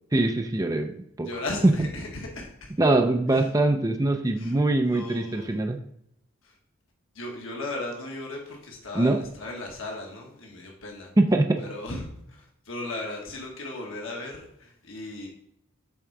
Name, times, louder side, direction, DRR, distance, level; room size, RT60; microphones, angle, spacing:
voice 1, 0.1-0.9 1.2-1.3 1.6-1.7 2.8-5.8 9.0-9.2 11.2-11.6, right 2 dB, 15° right, 5 dB, 0.4 m, -22 dB
voice 2, 1.2-2.7 3.3-3.5 4.4-4.5 4.9-5.6 6.4-6.6 7.1-11.1 11.6-15.3, left 2 dB, 75° left, 0 dB, 1.4 m, -36 dB
7.0 x 3.7 x 4.6 m, 0.74 s
head